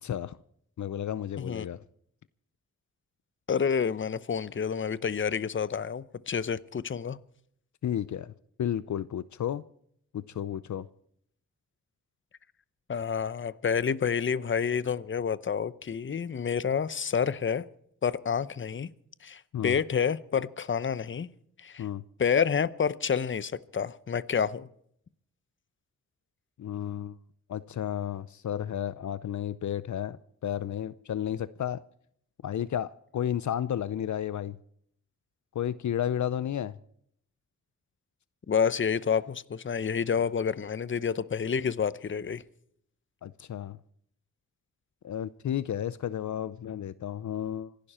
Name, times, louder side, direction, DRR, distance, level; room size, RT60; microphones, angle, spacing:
voice 1, 0.0-0.4 0.8-1.8 7.8-8.3 8.6-9.6 10.1-10.9 19.5-19.8 21.8-22.0 26.6-27.2 27.5-31.8 32.4-34.6 35.5-36.7 43.2-43.8 45.0-47.7, left 10 dB, 70° left, 0.6 m, -32 dB
voice 2, 1.4-1.7 3.5-7.2 12.9-17.6 18.0-18.9 19.2-21.3 21.6-21.9 22.2-24.7 38.5-42.4, left 6 dB, 40° left, 0.8 m, -29 dB
26.5 x 11.5 x 4.3 m
wide cardioid pair, 105°, 30 cm